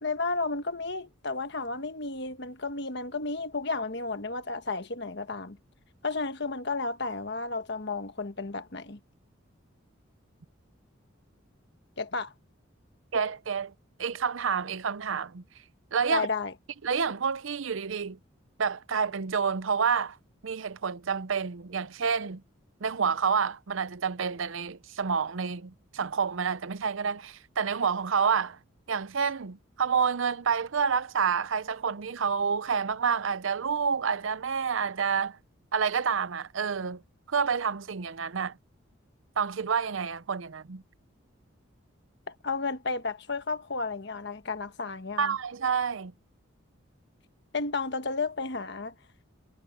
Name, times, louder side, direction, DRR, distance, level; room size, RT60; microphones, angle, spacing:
voice 1, 0.0-5.6 6.0-9.0 12.0-12.3 16.1-16.5 42.3-45.3 47.5-48.9, left 3 dB, 55° left, 1.3 m, -32 dB
voice 2, 13.1-13.7 14.0-15.4 15.9-16.3 16.8-18.2 18.6-20.2 20.4-22.4 22.8-28.6 28.9-35.4 35.7-37.0 37.3-38.5 39.4-40.8 45.2-46.1, right 6 dB, 70° right, 0.6 m, -28 dB
head